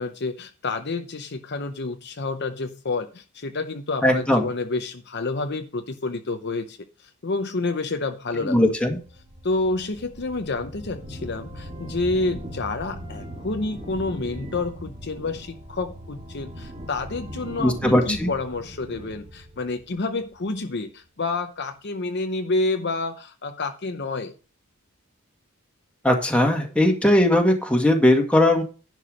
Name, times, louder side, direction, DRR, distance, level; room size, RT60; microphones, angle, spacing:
voice 1, 0.0-8.7 9.4-24.3, left 3 dB, 50° left, 6 dB, 0.8 m, -29 dB
voice 2, 4.0-4.5 8.4-9.0 17.6-18.3 26.0-28.6, left 1 dB, 5° left, 1 dB, 1.8 m, -19 dB
sound 1, 8.7-20.6, equal, 25° right, 2.2 m, -40 dB
11.0 x 4.7 x 6.4 m, 0.36 s
head